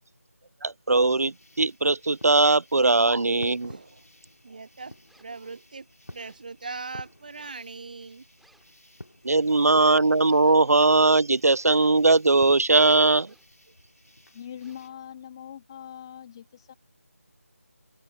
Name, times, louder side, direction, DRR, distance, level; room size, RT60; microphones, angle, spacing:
voice 1, 0.6-3.8 9.2-13.3, right 3 dB, 80° right, 0.3 m, -20 dB
sound 1, 1.2-14.9, left 1 dB, 85° left, 2.2 m, -51 dB
voice 2, 3.6-4.0 4.4-5.9 6.1-8.2, right 4 dB, 35° right, 0.6 m, -40 dB
sound 2, 5.1-5.4 6.1-6.5 7.3-7.7 8.4-8.8 10.2-10.7 11.5-12.2 13.0-13.6 14.6-15.1, right 1 dB, ahead, 4.8 m, -63 dB
voice 3, 14.3-16.7, left 9 dB, 20° left, 2.5 m, -42 dB
open air
figure-of-eight pair, 160°, 8 cm